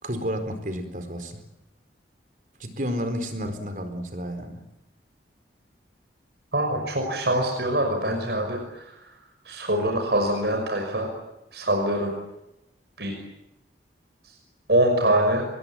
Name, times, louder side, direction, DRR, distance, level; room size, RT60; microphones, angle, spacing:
voice 1, 0.0-1.4 2.6-4.6, equal, 45° right, 8 dB, 4.3 m, -31 dB
voice 2, 6.5-9.1 9.4-11.1 11.5-12.2 13.0-13.2 14.2-14.4 14.7-15.5, right 1 dB, 70° right, 3 dB, 5.9 m, -24 dB
26.5 x 21.5 x 9.3 m, 0.91 s
head